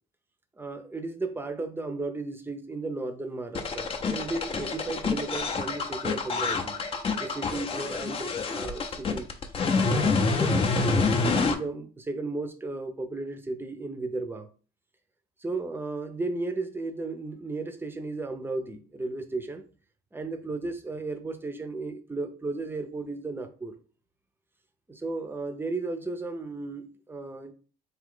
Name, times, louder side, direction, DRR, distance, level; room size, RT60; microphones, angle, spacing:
voice 1, 0.6-6.8 7.2-9.3 9.8-14.5 15.4-19.6 20.1-23.7 24.9-27.5, right 3 dB, 15° right, 0.6 m, -34 dB
sound 1, 3.5-11.5, left 4 dB, 35° left, 0.6 m, -27 dB
3.7 x 2.7 x 3.7 m
cardioid pair, 110°, 17 cm